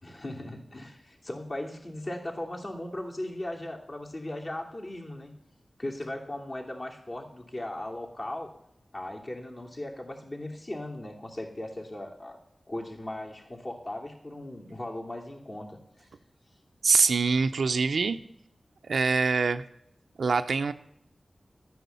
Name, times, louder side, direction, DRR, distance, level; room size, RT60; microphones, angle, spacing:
voice 1, 0.0-5.3 5.8-8.5 8.9-12.4 12.7-16.1, left 1 dB, 45° left, 0 dB, 2.8 m, -38 dB
voice 2, 16.8-18.2 18.9-19.6 20.2-20.7, right 4 dB, 90° right, 10 dB, 0.6 m, -24 dB
12.5 x 9.3 x 7.0 m, 0.77 s
wide cardioid pair, 70°, 0 cm